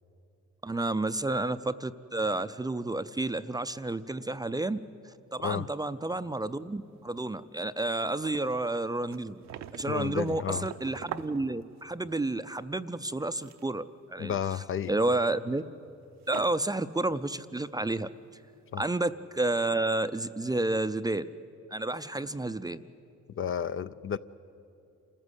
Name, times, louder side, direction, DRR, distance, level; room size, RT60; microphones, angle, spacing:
voice 1, 0.6-4.8 5.3-9.3 9.7-14.3 14.9-15.6 16.3-18.1 18.8-21.3 21.7-22.8, right 2 dB, 15° right, 12 dB, 0.5 m, -30 dB
sound 1, 6.1-6.8 7.1-7.2 7.6-7.7 7.9-12.2 13.1-13.8 14.2-14.4 15.5-15.6 16.2-16.9 17.3-17.4, right 10 dB, 65° right, 0.7 m, -44 dB
voice 2, 9.9-10.7 14.2-15.0 18.7-18.8 23.4-24.2, left 8 dB, 45° left, 14 dB, 0.5 m, -32 dB
27.0 x 14.5 x 8.2 m, 2.7 s
cardioid pair, 90°, 30 cm